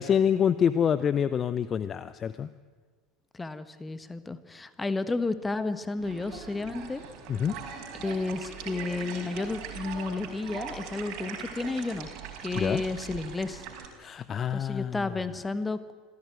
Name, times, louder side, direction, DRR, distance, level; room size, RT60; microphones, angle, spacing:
voice 1, 0.0-2.5 7.3-7.5 12.6-12.8 14.0-15.1, left 8 dB, 30° left, 15 dB, 0.7 m, -26 dB
voice 2, 3.3-7.0 8.0-12.1 12.4-13.6 14.5-15.9, left 3 dB, 15° left, 13 dB, 1.4 m, -32 dB
sound 1, 6.0-13.8, right 7 dB, 50° right, 4.6 m, -41 dB
26.0 x 15.0 x 9.3 m, 1.5 s
figure-of-eight pair, 75°, 0 cm